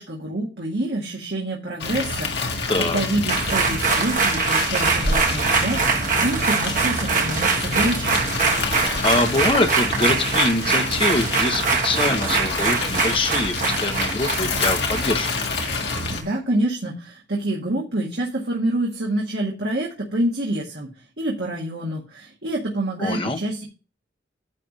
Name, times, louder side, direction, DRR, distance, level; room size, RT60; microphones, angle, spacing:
voice 1, 0.0-8.2 16.1-20.9 21.2-23.6, right 1 dB, 65° right, -2 dB, 1.9 m, -27 dB
sound 1, 1.8-16.2, left 3 dB, 65° left, 1.9 m, -28 dB
voice 2, 2.7-3.0 8.7-15.3 23.0-23.4, left 2 dB, 30° left, 6 dB, 1.0 m, -24 dB
sound 2, 3.3-16.0 16.3-16.4, right 4 dB, 45° right, 1.6 m, -23 dB
10.5 x 3.6 x 7.3 m, 0.32 s
head